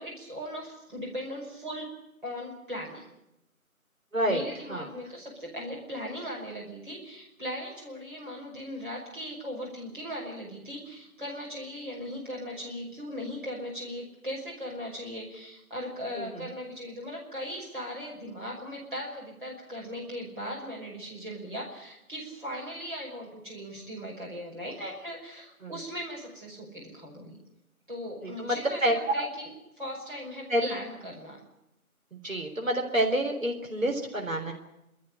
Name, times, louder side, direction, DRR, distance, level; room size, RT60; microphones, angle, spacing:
voice 1, 0.0-1.9 2.2-3.1 4.2-27.4 27.9-29.5 29.8-31.4, equal, 35° right, -3 dB, 5.5 m, -38 dB
voice 2, 4.1-4.9 16.1-16.5 25.6-25.8 28.2-29.3 30.5-30.8 32.1-34.5, right 1 dB, 65° right, 2 dB, 3.7 m, -28 dB
27.5 x 13.5 x 10.0 m, 0.87 s
figure-of-eight pair, 180°, 43 cm